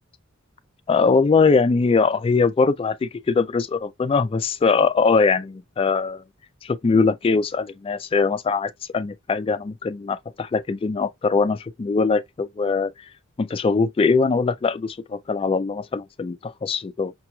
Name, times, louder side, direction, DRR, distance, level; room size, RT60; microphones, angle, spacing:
voice 1, 0.9-6.2 6.6-12.9 13.4-17.1, left 4 dB, 25° left, 0.3 m, -21 dB
5.9 x 3.0 x 2.2 m
head